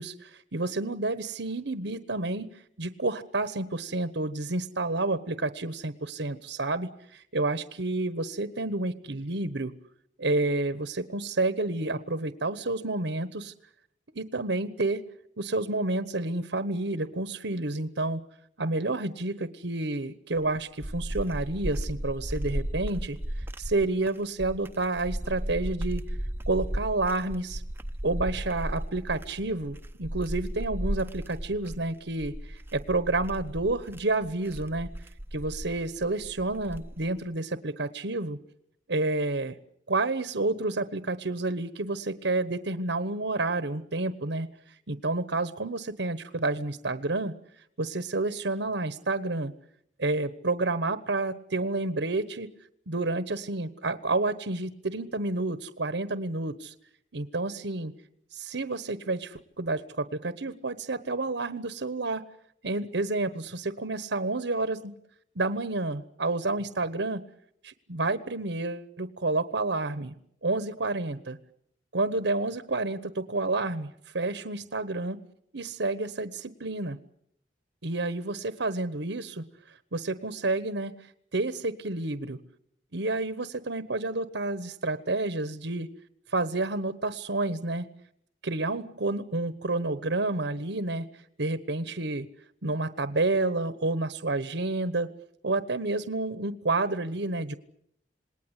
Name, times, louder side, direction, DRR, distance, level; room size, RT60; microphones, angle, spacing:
voice 1, 0.0-9.8 10.2-13.5 14.1-15.0 15.4-18.2 18.6-26.2 26.5-27.6 28.0-34.9 35.3-38.4 38.9-39.6 39.9-47.3 47.8-49.5 50.0-52.5 52.9-56.7 57.1-57.9 58.3-62.2 62.6-65.0 65.3-67.2 67.6-70.1 70.4-71.4 71.9-75.2 75.5-77.0 77.8-79.4 79.9-82.4 82.9-85.9 86.3-87.9 88.4-92.3 92.6-95.1 95.4-97.6, right 2 dB, 70° right, 13 dB, 1.2 m, -30 dB
sound 1, 20.3-37.2, equal, 10° right, 0.9 m, -35 dB
27.5 x 20.0 x 8.3 m, 0.73 s
head